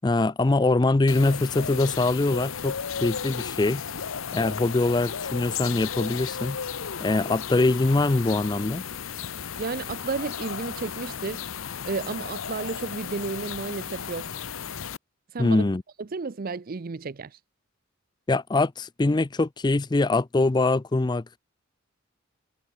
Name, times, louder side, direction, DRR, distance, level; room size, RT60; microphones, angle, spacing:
voice 1, 0.0-3.8 4.3-6.6 7.0-8.8 15.4-15.8 18.3-21.2, left 2 dB, 20° left, 0.4 m, -23 dB
sound 1, 1.1-15.0, left 7 dB, 75° left, 0.9 m, -34 dB
voice 2, 9.6-11.4 11.9-14.4 15.3-15.6 16.0-17.4, right 4 dB, 45° right, 0.5 m, -32 dB
head